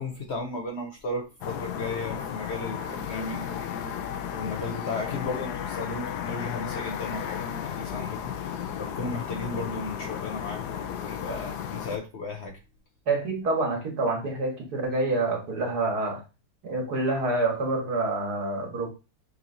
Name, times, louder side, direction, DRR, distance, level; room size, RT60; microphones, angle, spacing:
voice 1, 0.0-3.8 4.3-12.6, left 3 dB, 55° left, 0.8 m, -35 dB
sound 1, 1.4-12.0, left 8 dB, 80° left, 1.1 m, -34 dB
voice 2, 13.1-16.2 16.6-18.9, right 2 dB, 75° right, 1.8 m, -27 dB
5.6 x 2.8 x 2.6 m
omnidirectional pair, 1.7 m